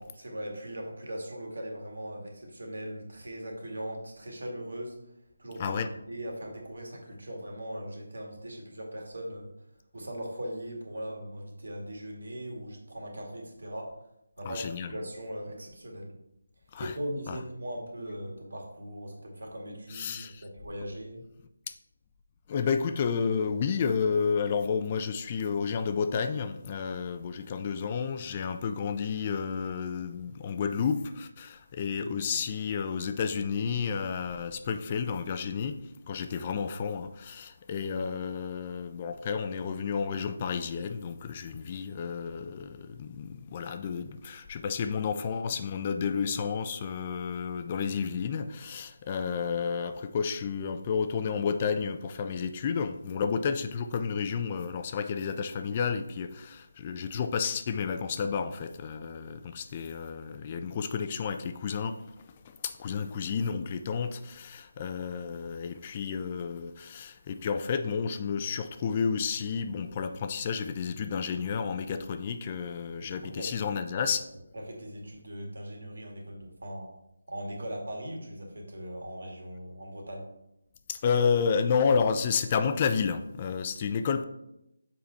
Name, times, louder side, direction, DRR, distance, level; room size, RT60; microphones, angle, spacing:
voice 1, 0.0-5.0 5.4-9.5 9.9-14.0 14.4-16.2 16.8-21.2 73.0-73.6 74.0-74.1 74.5-76.9 77.3-80.3, equal, 70° right, 1 dB, 2.3 m, -39 dB
voice 2, 14.4-15.0 16.7-16.9 17.3-17.4 19.9-20.4 22.5-35.8 36.1-74.2 80.9-84.2, left 6 dB, 30° left, 9 dB, 0.5 m, -31 dB
7.0 x 5.0 x 4.2 m, 0.84 s
figure-of-eight pair, 155°, 0 cm